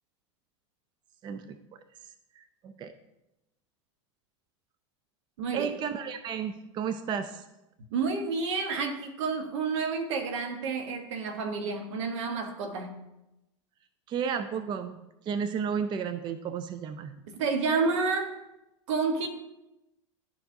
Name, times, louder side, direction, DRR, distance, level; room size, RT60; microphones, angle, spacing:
voice 1, 1.2-1.6 2.4-2.9 5.5-7.4 14.1-17.2, right 7 dB, 30° right, 11 dB, 0.4 m, -33 dB
voice 2, 7.9-12.9 17.4-18.3 18.9-19.3, right 4 dB, 70° right, 5 dB, 1.1 m, -29 dB
11.0 x 4.4 x 2.7 m, 0.93 s
hypercardioid pair, 100°, 16 cm